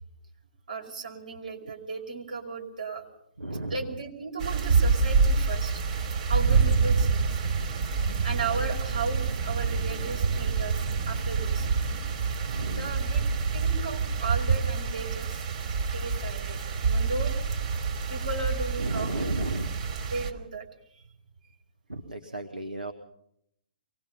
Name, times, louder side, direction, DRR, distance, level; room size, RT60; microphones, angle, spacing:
voice 1, 0.7-3.0 3.7-5.8 6.3-7.4 8.2-11.7 12.7-13.2 13.5-15.4 15.9-17.3 18.1-19.5 20.1-20.6 20.9-21.0, right 4 dB, 70° right, 1 dB, 5.1 m, -35 dB
voice 2, 3.4-3.8 12.5-13.0 18.8-19.9 21.9-22.9, right 1 dB, 85° right, 5 dB, 1.6 m, -34 dB
sound 1, 4.4-20.3, right 5 dB, 50° right, 3.2 m, -27 dB
24.0 x 20.0 x 5.6 m, 0.74 s
figure-of-eight pair, 120°, 5 cm